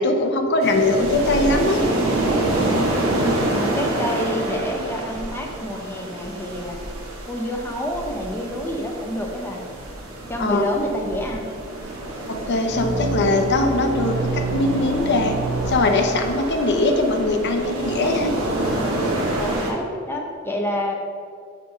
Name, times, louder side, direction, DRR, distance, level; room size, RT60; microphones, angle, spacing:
voice 1, 0.0-1.8 10.4-10.6 12.3-15.4 15.7-18.3, left 2 dB, 55° left, 4 dB, 0.7 m, -21 dB
sound 1, 0.6-19.7, right 1 dB, 75° right, 1.2 m, -27 dB
voice 2, 3.5-6.8 7.3-9.6 10.3-11.5 19.4-20.9, equal, 10° left, 0 dB, 0.7 m, -28 dB
sound 2, 12.7-16.5, right 3 dB, 55° right, 0.8 m, -28 dB
5.1 x 5.0 x 5.6 m, 2.2 s
head